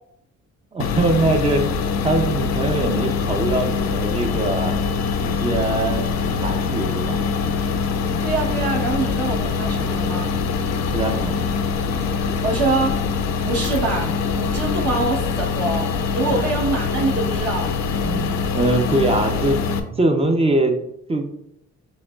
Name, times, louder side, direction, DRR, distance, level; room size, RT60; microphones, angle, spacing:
voice 1, 0.7-1.7 2.0-4.7 5.2-7.2 10.9-11.4 16.3-16.4 18.0-19.6 20.0-20.8 21.1-21.3, right 2 dB, 20° right, 4 dB, 0.5 m, -22 dB
sound 1, 0.8-19.8, left 5 dB, 65° left, 0.6 m, -23 dB
voice 2, 8.2-10.3 12.2-13.0 13.4-14.1 14.4-15.9 16.1-17.7, right 3 dB, 55° right, -2 dB, 1.0 m, -24 dB
6.3 x 2.9 x 2.3 m, 0.79 s
cardioid pair, 90°, 30 cm